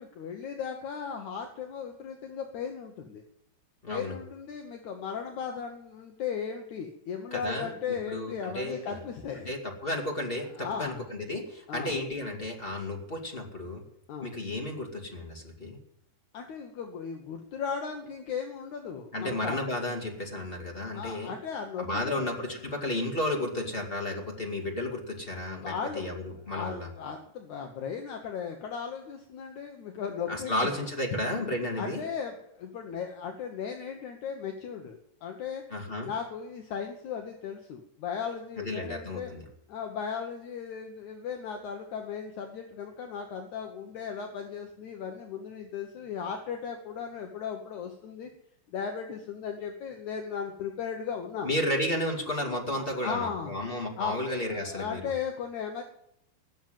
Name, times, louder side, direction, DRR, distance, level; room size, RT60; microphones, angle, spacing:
voice 1, 0.0-3.2 3.9-9.5 10.6-11.0 11.7-12.0 14.1-14.3 16.3-19.6 20.9-22.2 25.6-26.1 26.5-30.7 31.1-31.2 31.8-35.6 36.0-39.3 39.7-48.3 48.7-51.6 52.7-53.5 54.0-54.2 54.5-55.8, left 6 dB, 70° left, 4 dB, 1.9 m, -36 dB
voice 2, 3.8-4.1 7.3-7.7 8.1-8.9 9.4-13.8 14.2-15.8 19.1-21.3 21.8-26.9 30.3-32.0 35.7-36.1 38.6-39.4 51.4-55.1, left 1 dB, 20° left, 1 dB, 1.4 m, -33 dB
18.5 x 7.3 x 9.1 m, 0.77 s
omnidirectional pair, 4.8 m